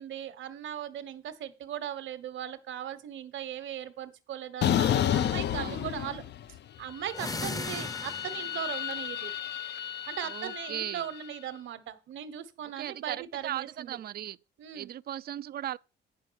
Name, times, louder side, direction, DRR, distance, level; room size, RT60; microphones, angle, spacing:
voice 1, 0.0-6.2 6.8-9.3 10.1-14.0 14.6-14.9, right 10 dB, 75° right, 1.2 m, -38 dB
sound 1, 4.6-6.6 6.9-11.2, left 10 dB, 60° left, 0.5 m, -31 dB
voice 2, 5.5-6.2 10.3-11.0 12.8-14.4 14.7-15.8, right 12 dB, 50° right, 0.4 m, -38 dB
sound 2, 7.1-8.7, left 3 dB, 20° left, 0.6 m, -37 dB
9.6 x 4.8 x 6.3 m
cardioid pair, 90°, 20 cm